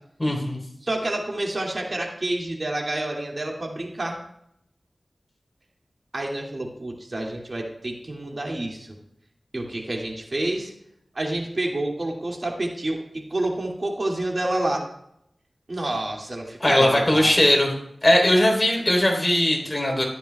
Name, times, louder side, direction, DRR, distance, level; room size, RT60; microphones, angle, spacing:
voice 1, 0.2-0.6 16.6-17.8 18.0-20.0, left 1 dB, 30° left, 0 dB, 3.5 m, -19 dB
voice 2, 0.8-4.2 6.1-8.9 9.5-10.7 11.1-14.9 15.7-17.3, right 1 dB, 55° right, 0 dB, 2.3 m, -28 dB
14.5 x 12.5 x 2.3 m, 0.75 s
wide cardioid pair, 60°, 0 cm